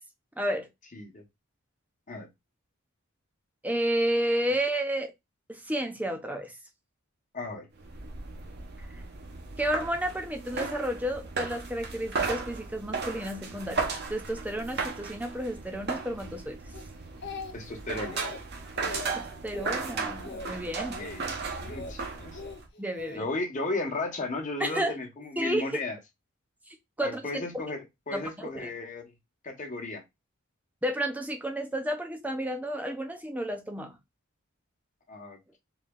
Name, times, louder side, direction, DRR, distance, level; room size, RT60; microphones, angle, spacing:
voice 1, 0.4-0.7 3.6-5.1 5.5-6.5 9.6-16.6 18.8-21.0 22.8-23.3 24.6-25.0 25.4-25.8 27.0-27.6 28.1-28.7 30.8-34.0, right 1 dB, 5° right, 0.7 m, -31 dB
voice 2, 0.9-1.2 2.1-2.3 7.3-7.7 17.5-18.2 20.9-22.4 23.1-26.0 27.0-29.1 29.4-30.0 35.1-35.6, left 2 dB, 35° left, 1.1 m, -35 dB
sound 1, 7.8-22.7, right 4 dB, 50° right, 0.9 m, -36 dB
Speech, 16.7-17.7 18.0-18.4 18.8-19.1 19.5-19.8 20.2-20.5 20.9-21.2 21.6-22.0 22.3-23.2 23.9-24.2, left 3 dB, 55° left, 0.8 m, -41 dB
4.1 x 3.1 x 2.2 m
head